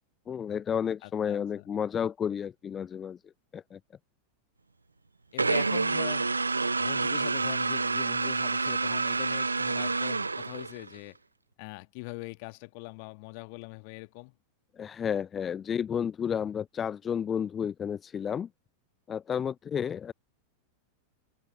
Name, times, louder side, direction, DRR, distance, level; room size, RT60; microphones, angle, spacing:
voice 1, 0.3-3.2 3.5-3.8 14.8-18.5 19.1-20.1, left 8 dB, 25° left, 0.4 m, -31 dB
voice 2, 1.0-1.6 5.3-6.3 6.8-11.2 11.6-14.3, left 32 dB, 45° left, 1.8 m, -42 dB
sound 1, 5.4-11.0, right 3 dB, 80° right, 0.4 m, -28 dB
figure-of-eight pair, 90°, 0 cm